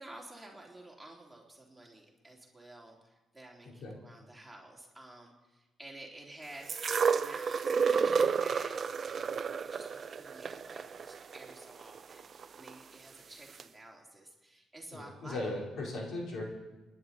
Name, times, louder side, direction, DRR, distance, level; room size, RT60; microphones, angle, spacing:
voice 1, 0.0-9.4 9.6-15.4, right 1 dB, 10° right, -3 dB, 3.5 m, -52 dB
voice 2, 3.6-4.0 14.9-16.4, left 2 dB, 65° left, -2 dB, 4.5 m, -38 dB
sound 1, 6.7-12.7 13.6-13.7, right 6 dB, 45° right, 0.6 m, -31 dB
29.0 x 10.5 x 4.4 m, 1.1 s
cardioid pair, 90°, 0 cm